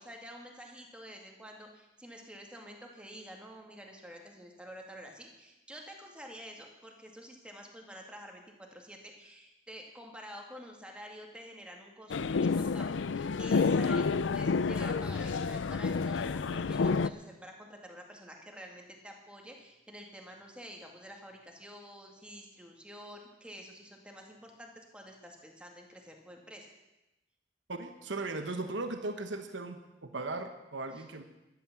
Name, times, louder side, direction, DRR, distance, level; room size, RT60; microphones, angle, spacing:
voice 1, 0.0-26.7 30.9-31.1, equal, 5° right, 1 dB, 2.2 m, -49 dB
sound 1, 12.1-17.1, left 4 dB, 85° left, 0.5 m, -29 dB
voice 2, 27.7-31.2, right 2 dB, 80° right, 7 dB, 1.2 m, -37 dB
13.0 x 11.0 x 7.3 m, 0.99 s
head